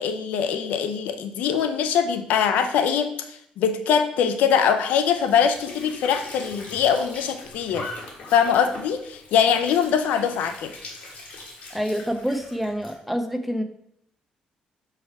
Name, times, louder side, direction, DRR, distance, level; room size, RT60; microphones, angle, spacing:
voice 1, 0.0-7.9 8.3-10.7, left 7 dB, 90° left, 9 dB, 0.5 m, -22 dB
Squeak / Sink (filling or washing) / Trickle dribble, 5.1-13.0, left 2 dB, 65° left, 1.5 m, -41 dB
voice 2, 11.7-13.6, equal, ahead, 6 dB, 0.6 m, -27 dB
6.2 x 3.3 x 4.6 m, 0.73 s
cardioid pair, 85°, 3 cm